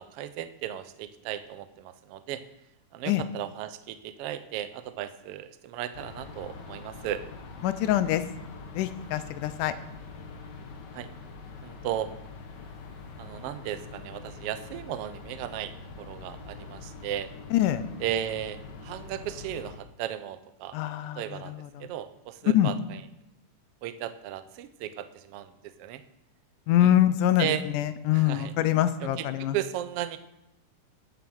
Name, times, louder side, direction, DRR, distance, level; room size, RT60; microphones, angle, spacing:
voice 1, 0.0-2.4 2.9-7.2 10.9-11.1 11.6-12.1 13.2-15.7 16.0-17.3 18.0-20.8 21.2-21.5 21.8-23.0 23.8-26.0 26.8-26.9 27.4-27.6 28.1-28.5 29.0-30.2, right 11 dB, 80° right, 11 dB, 1.3 m, -35 dB
sound 1, 5.9-19.8, left 4 dB, 60° left, 1.1 m, -44 dB
voice 2, 7.6-8.2 8.8-9.7 17.5-17.8 20.7-21.9 22.5-22.7 26.7-29.6, left 12 dB, 85° left, 12 dB, 2.2 m, -25 dB
14.0 x 7.7 x 6.2 m, 0.86 s
omnidirectional pair, 3.6 m